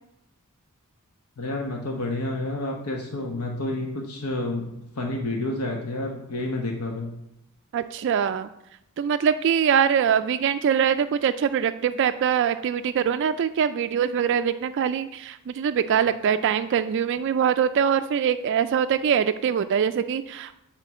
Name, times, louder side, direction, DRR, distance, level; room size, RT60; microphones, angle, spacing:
voice 1, 1.4-4.7 4.9-7.1, left 2 dB, 85° left, 1 dB, 1.0 m, -29 dB
voice 2, 7.7-8.5 9.0-20.6, right 8 dB, 55° right, 11 dB, 0.3 m, -23 dB
9.0 x 3.8 x 7.0 m, 0.84 s
head